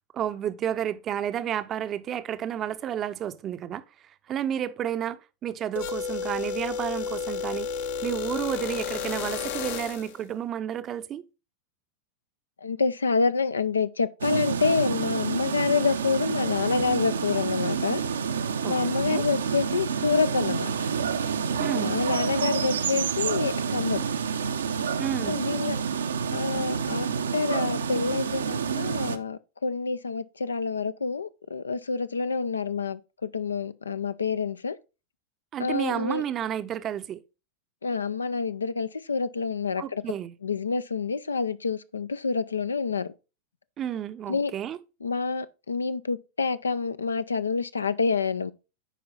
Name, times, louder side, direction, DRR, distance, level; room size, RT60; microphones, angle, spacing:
voice 1, 0.1-3.8 4.3-7.7 8.0-11.2 18.6-18.8 19.1-19.2 21.6-22.0 25.0-25.4 35.5-37.2 39.8-40.3 43.8-44.8, right 10 dB, 30° right, 0.6 m, -31 dB
sound 1, 5.8-10.2, left 6 dB, 55° left, 0.8 m, -32 dB
voice 2, 12.6-18.0 18.7-20.7 21.8-24.0 25.3-25.8 26.3-27.1 27.3-34.8 35.6-36.2 37.8-40.0 40.4-43.1 44.3-44.5 45.0-48.5, left 5 dB, 75° left, 0.4 m, -27 dB
sound 2, 14.2-29.2, right 6 dB, 70° right, 0.6 m, -28 dB
10.0 x 4.6 x 3.8 m
figure-of-eight pair, 90°, 0 cm